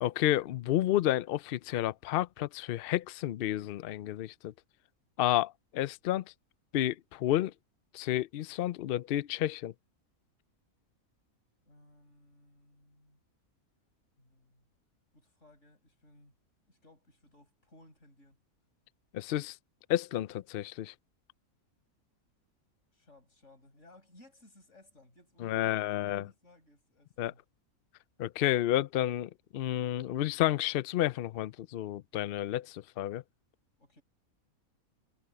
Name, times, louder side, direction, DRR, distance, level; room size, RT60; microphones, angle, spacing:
voice 1, 0.0-4.5 5.2-6.2 6.7-7.5 7.9-9.7 19.1-19.6 19.9-20.9 25.4-26.3 27.2-27.3 28.2-33.2, left 13 dB, 80° left, 0.5 m, -31 dB
voice 2, 11.6-13.2 14.2-14.7 15.1-16.3 16.7-18.4 22.9-27.4 33.8-34.0, left 1 dB, 55° left, 8.1 m, -60 dB
omnidirectional pair, 1.5 m